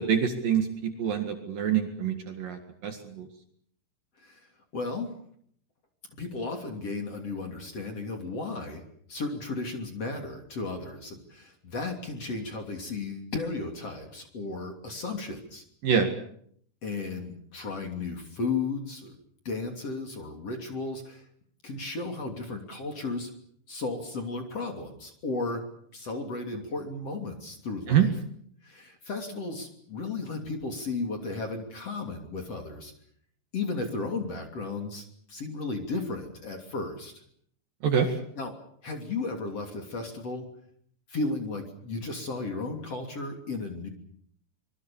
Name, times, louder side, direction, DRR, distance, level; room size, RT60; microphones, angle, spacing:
voice 1, 0.0-3.3 15.8-16.1 27.9-28.1 37.8-38.1, right 8 dB, 55° right, 6 dB, 3.1 m, -26 dB
voice 2, 4.7-5.1 6.2-8.8 9.1-15.6 16.8-19.2 19.5-21.2 21.6-23.3 23.7-25.6 25.9-28.1 28.6-32.9 33.5-37.2 38.0-38.5 38.8-40.5 41.1-43.9, left 3 dB, 35° left, 4 dB, 3.5 m, -34 dB
25.5 x 22.5 x 7.2 m, 0.67 s
omnidirectional pair, 5.4 m